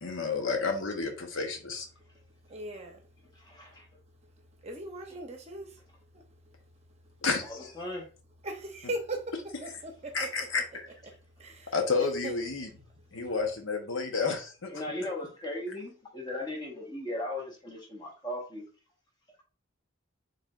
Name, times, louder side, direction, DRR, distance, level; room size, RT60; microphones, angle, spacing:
voice 1, 0.0-1.9 7.2-7.7 10.1-10.9 11.7-12.7 13.1-14.7, left 4 dB, 70° left, 0.9 m, -30 dB
voice 2, 2.5-3.0 4.6-5.8 6.1-6.2 8.4-9.2 9.6-10.6 11.4-11.7 12.0-12.5, right 1 dB, 30° right, 0.7 m, -39 dB
voice 3, 3.3-3.9 5.1-5.2 7.4-8.1 14.7-18.7, left 1 dB, 20° left, 1.1 m, -37 dB
4.8 x 3.3 x 2.4 m
head